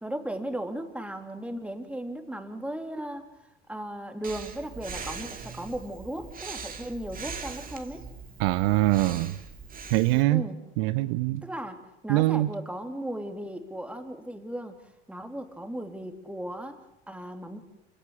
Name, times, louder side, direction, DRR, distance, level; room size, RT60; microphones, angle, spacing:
voice 1, 0.0-3.3 3.7-8.0 10.3-10.6 11.4-14.8 15.1-17.6, right 1 dB, 5° right, 7 dB, 3.1 m, -36 dB
Breathing, 4.2-10.2, right 5 dB, 25° right, 2.5 m, -41 dB
voice 2, 8.4-9.4 9.9-10.5 10.8-11.4 12.1-12.5, right 18 dB, 55° right, 15 dB, 0.8 m, -23 dB
29.0 x 15.5 x 8.6 m, 0.90 s
figure-of-eight pair, 65°, 34 cm